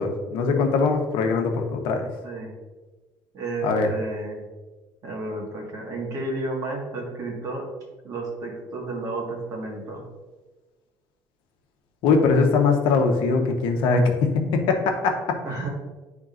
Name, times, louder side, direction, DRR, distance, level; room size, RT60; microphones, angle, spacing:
voice 1, 0.0-2.0 3.6-3.9 12.0-15.1, left 4 dB, 75° left, 3 dB, 0.9 m, -21 dB
voice 2, 3.3-4.5 5.0-7.6 8.0-10.0 15.4-15.7, right 2 dB, 45° right, -1 dB, 1.6 m, -32 dB
10.0 x 3.7 x 2.5 m, 1.2 s
cardioid pair, 150°, 8 cm